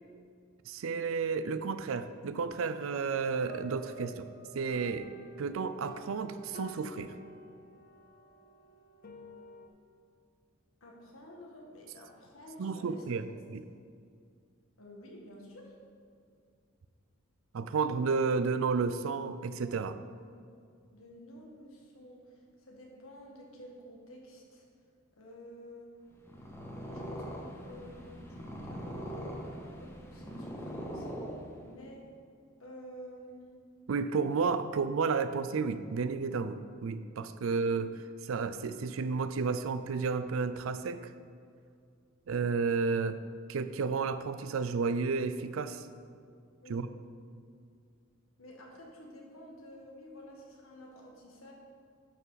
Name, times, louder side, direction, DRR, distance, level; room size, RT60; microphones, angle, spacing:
voice 1, 0.7-4.3 4.5-5.1 5.4-7.1 12.6-13.2 13.5-13.6 17.5-20.0 33.9-37.9 38.2-41.1 42.3-43.2 43.5-45.9 46.7-46.9, right 5 dB, 75° right, 12 dB, 0.4 m, -32 dB
sound 1, 3.2-9.7, right 1 dB, 45° left, 0.6 m, -49 dB
voice 2, 10.8-13.0 14.8-15.7 20.9-24.6 25.2-25.9 26.9-31.1 31.6-32.0 32.6-33.6 37.4-37.5 46.6-46.8 48.4-51.5, equal, 85° left, -1 dB, 1.6 m, -51 dB
Purr, 26.1-31.8, equal, 10° left, 0.9 m, -42 dB
10.5 x 5.5 x 4.0 m, 2.3 s
head